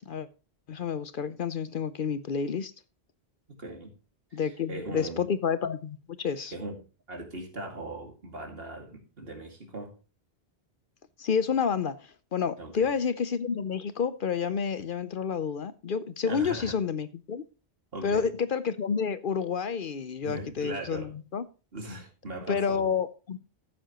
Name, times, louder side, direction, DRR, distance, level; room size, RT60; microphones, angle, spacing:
voice 1, 0.7-2.7 4.3-6.5 11.2-17.4 18.0-21.4 22.5-23.4, left 6 dB, 60° left, 0.8 m, -29 dB
voice 2, 3.5-4.0 4.3-5.3 6.5-6.8 7.1-10.0 12.6-12.9 16.3-16.8 17.9-18.3 20.2-21.2 21.7-22.9, right 2 dB, 65° right, 2.5 m, -39 dB
14.0 x 7.6 x 3.0 m
omnidirectional pair, 1.1 m